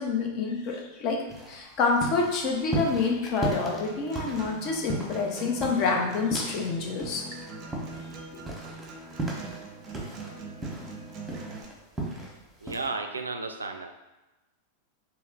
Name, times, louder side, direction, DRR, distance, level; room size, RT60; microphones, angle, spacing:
voice 1, 0.0-7.3 8.1-8.2, left 4 dB, 40° left, 1 dB, 0.7 m, -28 dB
sound 1, 1.3-6.7 7.0-10.3 10.6-12.3 12.7-12.9, right 2 dB, 10° right, 1.0 m, -35 dB
Acoustic guitar, 3.7-11.6, right 3 dB, 35° right, 0.6 m, -43 dB
voice 2, 12.6-13.9, right 3 dB, 75° right, 5 dB, 0.3 m, -33 dB
3.1 x 2.9 x 3.8 m, 1.1 s
figure-of-eight pair, 90°, 0 cm